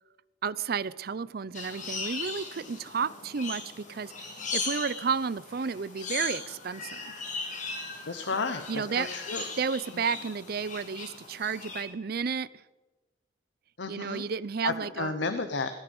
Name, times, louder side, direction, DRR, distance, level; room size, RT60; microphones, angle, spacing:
voice 1, 0.4-7.1 8.7-9.1 9.6-12.5 13.9-15.2, right 6 dB, 50° right, 19 dB, 0.5 m, -32 dB
sound 1, 1.5-11.8, left 4 dB, 40° left, 2.8 m, -38 dB
voice 2, 8.1-9.4 13.8-14.2 14.6-15.7, left 4 dB, 65° left, 9 dB, 0.8 m, -32 dB
18.5 x 10.0 x 5.3 m, 1.1 s
head